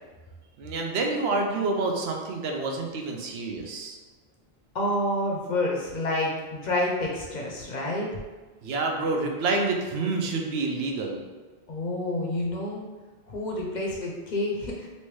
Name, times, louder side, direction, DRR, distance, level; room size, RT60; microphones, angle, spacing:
voice 1, 0.6-4.0 8.6-11.2, right 3 dB, 80° right, 2 dB, 0.8 m, -28 dB
voice 2, 4.7-8.1 11.7-12.9 13.3-14.9, left 1 dB, 55° left, -1 dB, 0.6 m, -28 dB
3.2 x 2.8 x 3.1 m, 1.3 s
omnidirectional pair, 1.1 m